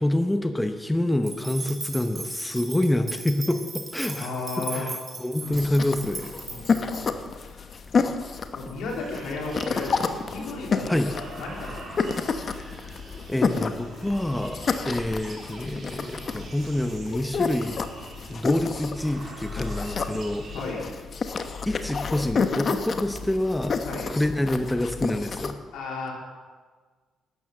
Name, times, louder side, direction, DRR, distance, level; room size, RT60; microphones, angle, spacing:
voice 1, 0.0-6.3 10.9-11.1 12.5-13.0 13.3-17.8 18.3-20.5 21.7-25.6, left 1 dB, 10° left, 7 dB, 0.9 m, -27 dB
sound 1, 1.2-7.0, right 3 dB, 30° right, 3.9 m, -38 dB
voice 2, 4.0-4.9 5.4-5.6 6.4-7.7 8.0-8.1 8.5-12.2 14.7-14.9 20.5-21.0 23.8-24.1 25.7-26.1, left 3 dB, 80° left, -2 dB, 3.9 m, -35 dB
sound 2, 5.5-25.5, left 5 dB, 45° left, 1.1 m, -30 dB
sound 3, 9.0-20.8, right 3 dB, 50° right, 3.2 m, -45 dB
12.5 x 9.1 x 7.3 m, 1.5 s
cardioid pair, 90°, 0 cm